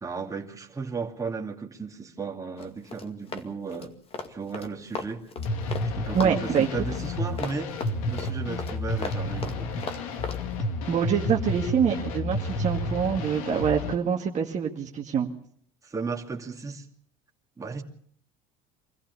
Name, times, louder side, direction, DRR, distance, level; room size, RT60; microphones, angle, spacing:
voice 1, 0.0-3.9 4.3-5.3 5.9-7.8 8.0-9.8 15.8-16.9 17.6-17.8, right 4 dB, 20° right, 2.6 m, -35 dB
Run, 2.6-5.9 6.1-10.4, left 4 dB, 35° left, 2.2 m, -37 dB
sound 1, 5.4-14.0, left 2 dB, 85° left, 2.2 m, -31 dB
voice 2, 6.1-6.7 10.9-15.3, right 7 dB, 45° right, 2.1 m, -25 dB
25.0 x 15.0 x 7.1 m
supercardioid pair, 90°, 18 cm